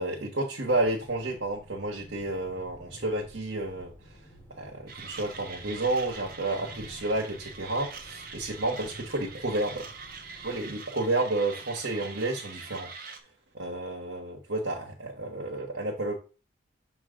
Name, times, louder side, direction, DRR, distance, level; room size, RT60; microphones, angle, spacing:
voice 1, 0.0-4.2 4.5-9.9 10.4-12.9 13.5-16.1, right 2 dB, 70° right, -1 dB, 1.2 m, -31 dB
sound 1, 0.7-10.7, equal, 15° left, 1.5 m, -52 dB
Mechanisms, 4.9-13.2, right 5 dB, 50° right, 0.8 m, -44 dB
6.4 x 3.1 x 5.0 m, 0.35 s
head